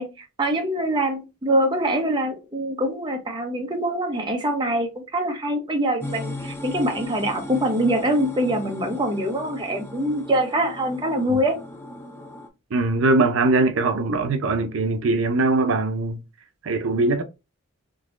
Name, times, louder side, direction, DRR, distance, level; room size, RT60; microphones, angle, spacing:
voice 1, 0.0-11.6, right 1 dB, 25° right, 0.8 m, -24 dB
sound 1, 6.0-12.5, left 2 dB, 15° left, 0.5 m, -37 dB
voice 2, 12.7-16.2 16.6-17.2, right 3 dB, 80° right, 0.5 m, -21 dB
3.8 x 2.9 x 2.5 m
head